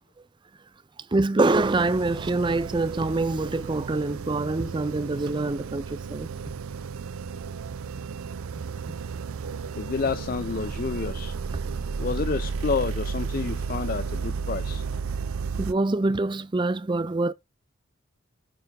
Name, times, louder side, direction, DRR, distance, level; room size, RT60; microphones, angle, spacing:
voice 1, 1.1-6.3 15.6-17.3, right 2 dB, 20° right, 0.4 m, -25 dB
sound 1, 1.5-15.7, right 5 dB, 85° right, 0.5 m, -33 dB
voice 2, 9.7-11.3 12.0-14.8, left 4 dB, 40° left, 0.4 m, -29 dB
9.0 x 3.5 x 5.2 m
head